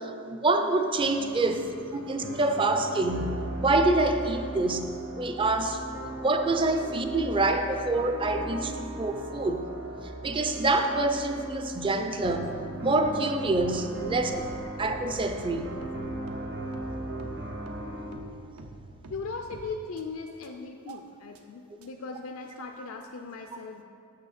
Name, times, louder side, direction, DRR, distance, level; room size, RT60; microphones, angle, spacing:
voice 1, 0.0-1.7 2.1-4.9 5.2-5.8 6.2-9.6 10.2-12.6 12.8-14.4 14.8-15.7 20.9-21.0, right 2 dB, 20° right, 7 dB, 0.4 m, -26 dB
sound 1, 1.0-18.1, right 1 dB, 50° right, 1.0 m, -38 dB
sound 2, 13.0-13.1 13.5-13.6 14.0-20.0 20.4-20.5 20.9-21.0 21.3-21.4 21.8-21.9, right 2 dB, 75° right, 0.7 m, -47 dB
voice 2, 19.1-23.8, left 4 dB, 60° left, 4 dB, 0.4 m, -39 dB
6.6 x 6.1 x 6.4 m, 2.4 s
head